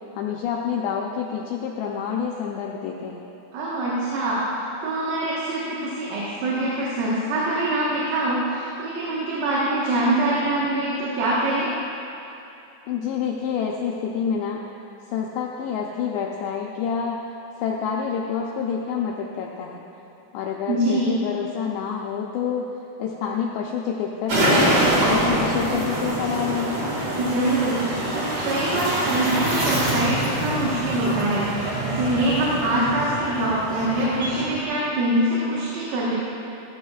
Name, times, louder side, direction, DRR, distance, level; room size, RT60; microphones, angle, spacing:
voice 1, 0.1-3.2 12.9-14.6 15.1-17.2 17.6-19.8 20.3-22.7 23.0-24.8 25.1-26.9, left 7 dB, 85° left, -1 dB, 2.5 m, -27 dB
voice 2, 3.5-11.7 20.7-21.1 27.2-36.2, right 1 dB, 85° right, -7 dB, 4.2 m, -24 dB
sound 1, 24.3-34.6, right 1 dB, 55° right, 1.6 m, -25 dB
17.5 x 13.5 x 2.4 m, 3.0 s
omnidirectional pair, 5.8 m